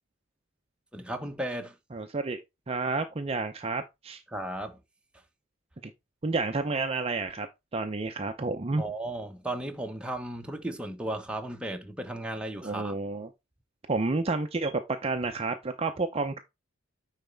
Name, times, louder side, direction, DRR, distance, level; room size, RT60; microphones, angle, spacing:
voice 1, 0.9-1.7 4.3-4.8 8.8-13.0, right 1 dB, 5° right, 1.0 m, -35 dB
voice 2, 1.9-2.4 2.7-4.2 5.8-5.9 6.2-7.5 7.7-8.8 12.6-13.3 13.9-16.4, right 3 dB, 30° right, 0.6 m, -30 dB
9.3 x 4.1 x 3.4 m
head